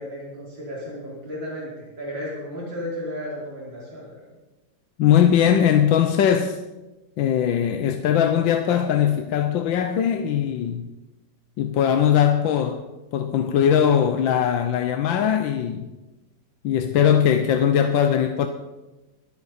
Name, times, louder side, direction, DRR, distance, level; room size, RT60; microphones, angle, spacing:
voice 1, 0.0-4.2, equal, 75° right, 5.3 m, -34 dB
voice 2, 5.0-6.6 7.2-10.9 11.6-12.8 13.1-15.9 16.6-18.5, left 9 dB, 80° left, 1.5 m, -20 dB
24.5 x 8.7 x 4.2 m
omnidirectional pair, 2.1 m